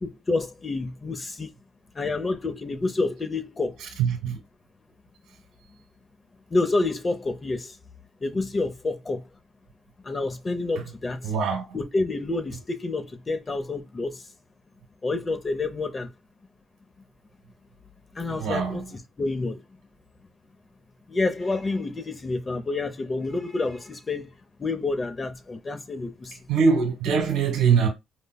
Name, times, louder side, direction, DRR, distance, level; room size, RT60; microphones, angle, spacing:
voice 1, 0.0-1.5 1.9-3.8 6.5-7.7 8.2-9.2 10.0-11.3 11.7-14.2 15.0-16.1 18.1-18.8 19.2-19.6 21.1-24.3 24.6-26.4, left 3 dB, 25° left, 0.6 m, -28 dB
voice 2, 4.0-4.4 11.2-11.6 18.3-18.8 26.5-27.9, right 6 dB, 85° right, 1.4 m, -22 dB
5.1 x 2.1 x 2.2 m
cardioid pair, 115°, 0 cm